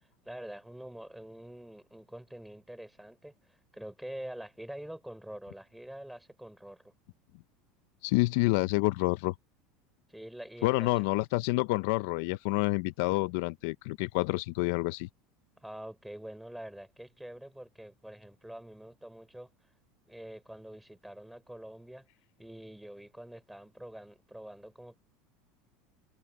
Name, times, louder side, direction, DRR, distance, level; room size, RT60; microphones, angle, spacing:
voice 1, 0.2-6.9 10.1-11.1 15.6-19.5 20.1-22.1 22.4-25.0, right 1 dB, ahead, 3.5 m, -46 dB
voice 2, 8.0-9.3 10.6-15.1, left 22 dB, 65° left, 0.5 m, -28 dB
supercardioid pair, 160°, 0 cm